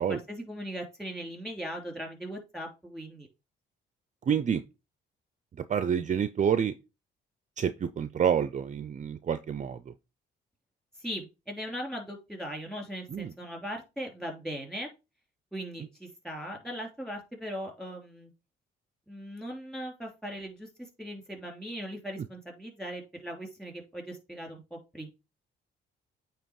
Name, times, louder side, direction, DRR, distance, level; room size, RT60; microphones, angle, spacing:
voice 1, 0.0-3.3 11.0-14.9 15.5-18.3 19.1-20.7 21.0-25.1, equal, 5° left, 3.1 m, -39 dB
voice 2, 4.3-4.6 5.6-6.7 7.6-9.9 13.1-13.3, right 8 dB, 40° right, 0.5 m, -28 dB
8.9 x 3.0 x 4.7 m
cardioid pair, 90°, 20 cm